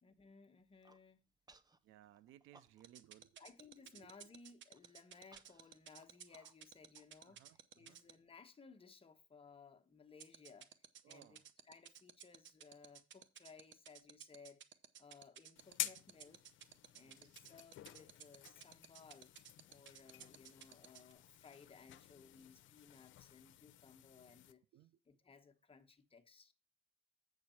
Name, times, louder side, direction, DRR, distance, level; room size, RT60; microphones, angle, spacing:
voice 1, 0.0-1.3 3.4-10.7 11.1-14.6 15.0-16.4 16.9-19.3 19.7-24.6 25.1-26.5, left 5 dB, 30° left, 1.2 m, -61 dB
Human voice, 0.6-1.0 1.5-1.8 2.1-3.1 3.4-3.5 3.8-4.2 4.7-7.6, right 3 dB, 20° right, 0.7 m, -67 dB
voice 2, 1.8-3.4 3.8-4.3 7.2-8.0 11.0-11.5 17.0-17.4 24.7-25.0, right 13 dB, 90° right, 0.6 m, -64 dB
sound 1, 2.8-8.1 10.2-21.1, right 9 dB, 70° right, 0.9 m, -55 dB
sound 2, 15.6-24.5, left 14 dB, 80° left, 0.6 m, -50 dB
8.0 x 6.7 x 4.3 m
cardioid pair, 90°, 20 cm